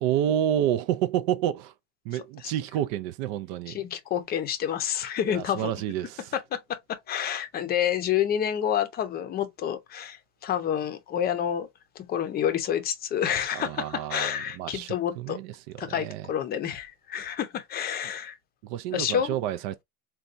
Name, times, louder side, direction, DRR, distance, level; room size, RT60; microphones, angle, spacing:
voice 1, 0.0-1.7 2.1-3.8 5.2-6.3 13.5-14.3 14.6-15.5 15.8-16.3 18.6-19.8, right 11 dB, 60° right, 0.4 m, -29 dB
voice 2, 3.7-5.7 6.3-11.7 12.0-15.4 15.8-18.4 18.9-19.4, left 9 dB, 30° left, 0.6 m, -29 dB
4.0 x 2.3 x 2.4 m
supercardioid pair, 140°, 33 cm